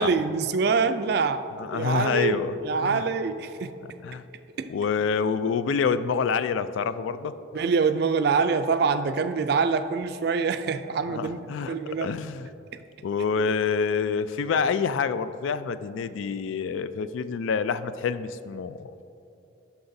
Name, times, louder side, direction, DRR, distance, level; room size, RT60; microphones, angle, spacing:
voice 1, 0.0-3.7 4.6-4.7 7.5-11.4 11.7-12.1, right 5 dB, 50° right, 10 dB, 0.3 m, -25 dB
voice 2, 1.6-3.0 4.0-4.2 4.7-7.4 11.1-12.5 13.0-19.0, left 6 dB, 75° left, 13 dB, 0.3 m, -27 dB
11.5 x 5.8 x 2.7 m, 2.9 s
head